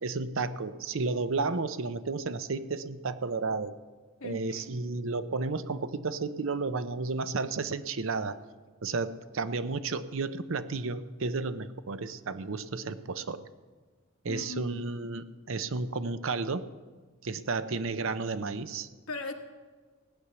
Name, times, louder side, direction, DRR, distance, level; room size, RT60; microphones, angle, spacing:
voice 1, 0.0-3.7 4.2-8.4 8.8-13.5 14.2-16.6 17.2-18.9, right 3 dB, 65° right, 12 dB, 0.7 m, -32 dB
voice 2, 4.2-4.7 14.3-14.8 19.1-19.3, left 2 dB, 80° left, 4 dB, 1.5 m, -38 dB
16.5 x 9.6 x 7.0 m, 1.4 s
head